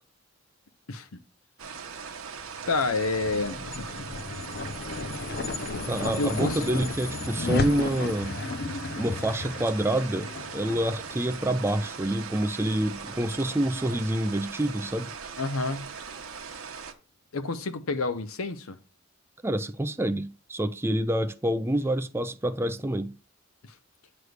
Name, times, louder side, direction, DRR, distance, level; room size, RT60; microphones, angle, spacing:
sound 1, 1.6-16.9, right 6 dB, 90° right, 1.1 m, -40 dB
sound 2, 2.5-13.1, left 3 dB, 50° left, 0.5 m, -34 dB
voice 1, 2.7-4.0 6.2-6.6 15.4-15.9 17.3-18.8 23.6-23.7, left 3 dB, 85° left, 0.8 m, -29 dB
voice 2, 5.9-8.3 9.0-15.1 19.4-23.1, right 1 dB, 10° right, 0.4 m, -27 dB
9.4 x 3.3 x 6.5 m
head